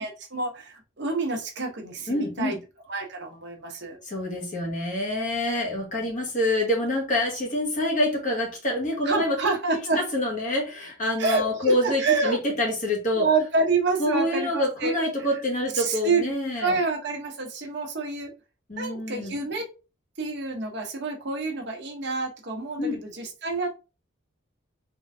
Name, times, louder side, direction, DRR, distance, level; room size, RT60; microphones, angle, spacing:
voice 1, 0.0-2.6 2.9-4.0 4.5-4.7 9.0-10.0 11.2-12.4 13.1-14.9 15.7-16.3 16.6-18.3 18.8-19.7 20.2-23.7, right 4 dB, 55° right, 2 dB, 0.9 m, -28 dB
voice 2, 2.1-2.6 4.0-9.5 10.0-13.3 14.0-16.8 18.7-19.3 22.8-23.0, left 1 dB, 35° left, -1 dB, 1.3 m, -26 dB
3.7 x 3.2 x 2.6 m, 0.30 s
head